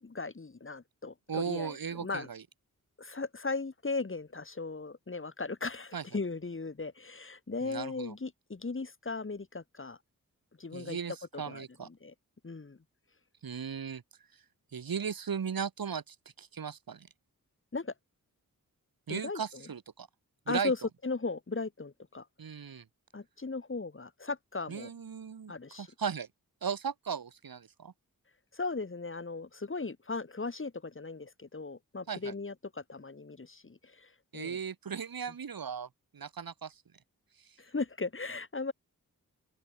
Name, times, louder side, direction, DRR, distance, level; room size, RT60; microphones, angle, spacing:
voice 1, 0.0-2.3 3.0-10.0 10.6-11.0 11.3-12.1 12.4-12.8 17.7-17.9 19.1-19.6 20.5-20.8 21.0-22.3 23.1-24.9 25.5-25.9 28.5-34.6 37.6-38.7, left 3 dB, 35° left, 2.0 m, -37 dB
voice 2, 1.3-2.4 5.9-6.0 7.6-8.1 10.7-11.9 13.4-14.0 14.7-17.1 19.1-20.1 20.5-20.7 22.4-22.8 24.7-26.3 26.6-27.9 32.1-32.3 34.3-36.8 37.4-37.6, right 7 dB, 85° right, 3.3 m, -37 dB
open air
cardioid pair, 55°, 35 cm